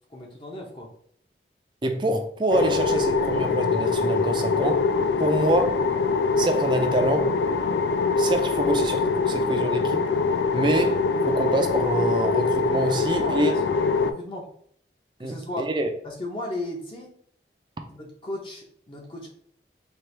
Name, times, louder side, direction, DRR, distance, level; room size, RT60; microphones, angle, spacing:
voice 1, 0.1-0.9 13.0-14.5 15.2-15.7 16.0-17.1 17.9-19.3, left 1 dB, 30° left, 0.7 m, -35 dB
voice 2, 1.8-4.8 5.2-5.8 6.4-7.3 8.2-10.0 10.5-11.0 11.2-13.5 15.2-15.9, right 1 dB, 25° right, 0.4 m, -25 dB
sound 1, 2.5-14.1, left 4 dB, 75° left, 0.3 m, -23 dB
4.3 x 2.4 x 3.2 m
head